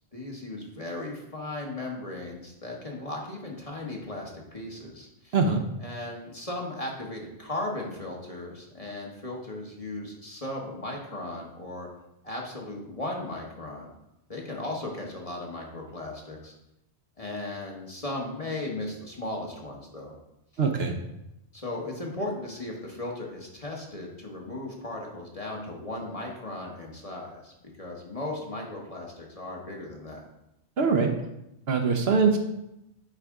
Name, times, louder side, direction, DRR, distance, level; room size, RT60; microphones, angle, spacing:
voice 1, 0.1-5.3 5.8-11.9 12.2-13.9 14.3-16.5 17.2-20.1 21.5-27.5 27.8-30.2, left 2 dB, 30° left, -1 dB, 1.2 m, -36 dB
voice 2, 20.6-20.9 30.8-31.1 31.7-32.4, right 5 dB, 65° right, 4 dB, 0.9 m, -22 dB
8.2 x 4.9 x 3.6 m, 0.87 s
omnidirectional pair, 1.2 m